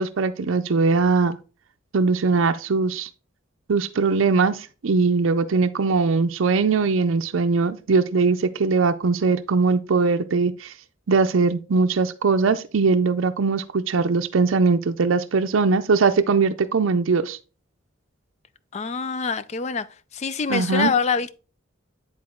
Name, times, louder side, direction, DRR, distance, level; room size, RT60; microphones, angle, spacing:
voice 1, 0.0-1.4 1.9-3.1 3.7-10.7 11.1-17.4 20.5-20.9, right 4 dB, 75° right, 0.5 m, -21 dB
voice 2, 18.7-19.9 20.1-21.4, left 5 dB, 35° left, 0.4 m, -25 dB
9.7 x 4.0 x 3.6 m
head